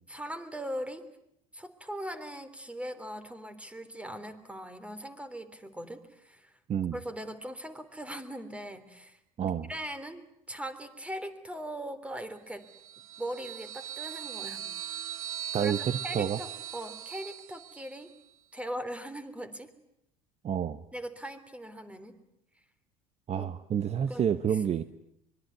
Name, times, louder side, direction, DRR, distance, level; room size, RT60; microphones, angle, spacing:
voice 1, 0.1-1.1 1.5-6.5 6.9-12.6 13.2-14.7 15.5-18.1 18.5-19.7 20.9-22.2 23.4-23.5 24.0-24.6, equal, 5° right, 12 dB, 3.4 m, -40 dB
voice 2, 9.4-9.7 15.5-16.4 20.4-20.8 23.3-24.8, right 8 dB, 35° right, 13 dB, 1.1 m, -29 dB
sound 1, 12.6-18.1, right 10 dB, 80° right, 1.2 m, -40 dB
25.0 x 23.0 x 9.5 m, 0.80 s
hypercardioid pair, 75°, 18 cm